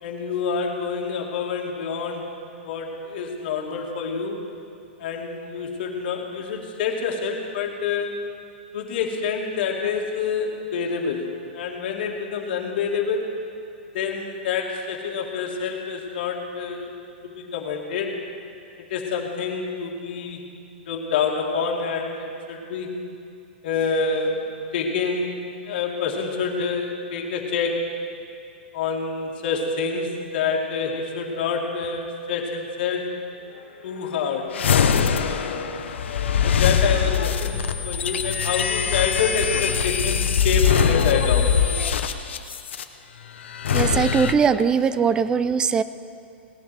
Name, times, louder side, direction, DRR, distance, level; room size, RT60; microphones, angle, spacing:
voice 1, 0.0-2.3 2.6-4.4 5.0-8.2 8.7-11.3 11.5-13.3 13.9-16.9 17.2-18.2 18.9-20.4 20.9-22.9 23.6-24.5 24.7-25.3 25.7-27.8 28.7-33.1 33.8-34.6 35.2-35.7 36.4-41.6, left 5 dB, 55° left, 1 dB, 2.2 m, -27 dB
sound 1, 34.5-42.8 43.5-44.3, left 7 dB, 80° left, 0.9 m, -22 dB
voice 2, 43.7-45.8, right 6 dB, 15° right, 14 dB, 0.4 m, -20 dB
18.0 x 11.0 x 6.1 m, 2.6 s
hypercardioid pair, 150°, 6 cm